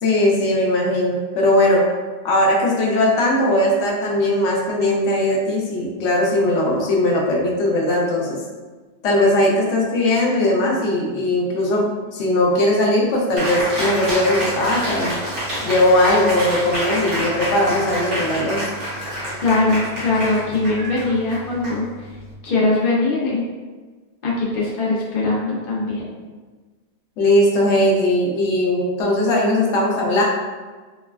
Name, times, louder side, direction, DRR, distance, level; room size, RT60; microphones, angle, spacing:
voice 1, 0.0-1.8 2.2-8.4 9.0-11.9 12.1-15.2 15.6-18.7 27.2-30.2, left 1 dB, 90° left, -2 dB, 0.9 m, -19 dB
Cheering, 13.4-22.3, equal, 85° right, 1.3 m, -27 dB
voice 2, 19.4-22.1 22.4-23.5 24.2-26.0, left 3 dB, 55° left, -5 dB, 0.8 m, -21 dB
3.2 x 2.2 x 2.2 m, 1.3 s
omnidirectional pair, 1.2 m